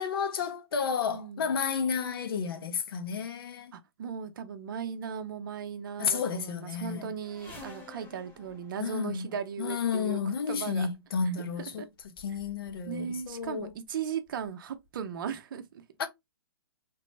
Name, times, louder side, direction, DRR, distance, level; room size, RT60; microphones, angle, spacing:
voice 1, 0.0-3.7 6.0-7.1 8.8-9.3 9.6-11.9 12.2-13.7 16.0-16.1, left 6 dB, 65° left, 0.7 m, -31 dB
voice 2, 1.1-1.6 3.7-10.2 10.5-10.9 11.8-11.9 12.3-12.4 12.9-15.8, right 7 dB, 55° right, 0.6 m, -37 dB
sound 1, 7.2-9.7 10.7-10.9 11.7-11.8 12.0-12.9 13.2-13.7 14.4-14.5 14.8-14.9, left 2 dB, 15° left, 1.0 m, -51 dB
3.0 x 2.0 x 3.1 m
hypercardioid pair, 140°, 13 cm